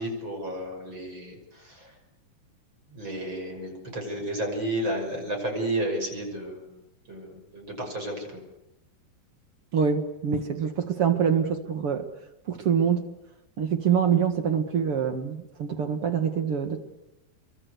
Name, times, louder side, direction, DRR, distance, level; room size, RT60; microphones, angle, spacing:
voice 1, 0.0-1.9 2.9-6.7 7.1-8.4, right 1 dB, 25° right, 2 dB, 6.6 m, -32 dB
voice 2, 9.7-12.0 12.5-13.0 13.6-16.8, right 7 dB, 55° right, 7 dB, 1.6 m, -25 dB
28.5 x 23.0 x 8.1 m, 0.93 s
omnidirectional pair, 4.9 m